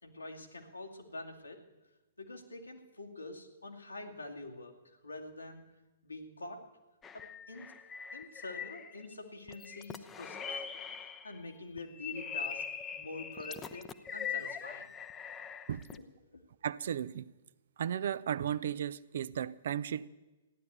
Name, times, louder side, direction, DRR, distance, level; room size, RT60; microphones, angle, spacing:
voice 1, 0.0-1.6 2.2-5.6 6.0-6.6 7.1-7.8 8.1-10.6 11.0-12.6 12.9-14.9 15.9-16.0 16.3-16.4, left 2 dB, 80° left, 2.4 m, -46 dB
sound 1, 7.0-9.1 9.5-11.4 11.8-16.0, left 7 dB, 15° left, 0.7 m, -42 dB
voice 2, 16.6-17.3 17.8-20.1, right 9 dB, 55° right, 0.5 m, -35 dB
15.5 x 10.5 x 8.1 m
figure-of-eight pair, 115°, 0 cm